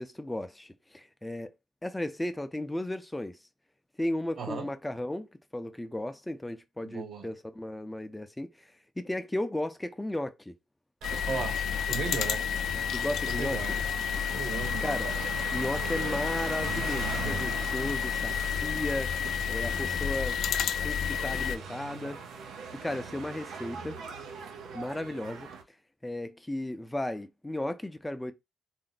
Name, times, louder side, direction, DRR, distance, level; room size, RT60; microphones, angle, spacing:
voice 1, 0.0-1.5 1.8-3.4 4.0-5.3 5.5-10.5 12.9-13.6 14.8-15.1 15.5-19.1 19.5-20.4 20.8-22.2 22.8-24.0 24.7-25.5 26.0-28.3, left 1 dB, 10° left, 0.6 m, -35 dB
voice 2, 4.4-4.7 6.8-7.3 11.3-12.4 13.3-13.7 14.3-15.0, right 6 dB, 65° right, 0.9 m, -36 dB
sound 1, 11.0-21.6, left 8 dB, 85° left, 0.4 m, -31 dB
sound 2, 11.0-25.6, right 5 dB, 90° right, 0.8 m, -41 dB
4.3 x 2.1 x 4.0 m
cardioid pair, 105°, 0 cm